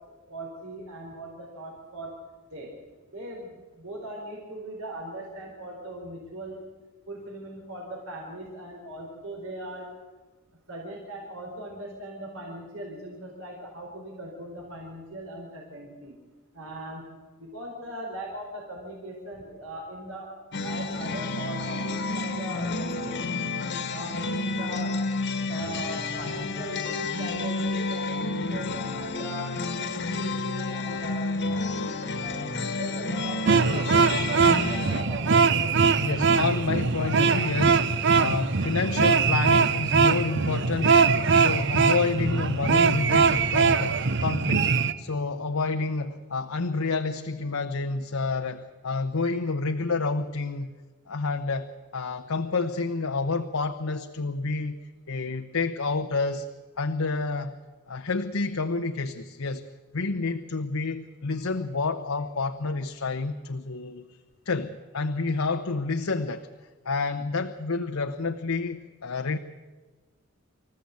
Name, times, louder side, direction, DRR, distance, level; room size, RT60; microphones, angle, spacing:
voice 1, 0.1-2.1 2.5-2.7 3.1-6.6 7.1-9.9 10.7-16.1 16.5-17.0 17.4-20.3 20.6-23.4 23.9-24.9 25.4-32.4 32.8-35.3, right 1 dB, 75° right, -1 dB, 4.5 m, -39 dB
sound 1, 20.5-35.0, left 3 dB, 55° left, 1.5 m, -30 dB
sound 2, 33.5-44.9, right 5 dB, 60° right, 0.9 m, -22 dB
voice 2, 36.0-50.7 51.1-51.7 51.9-54.8 55.1-56.5 56.8-57.5 57.9-59.6 59.9-64.1 64.4-66.5 66.8-69.4, left 3 dB, 85° left, 6 dB, 0.9 m, -29 dB
26.5 x 14.5 x 8.3 m, 1.3 s
head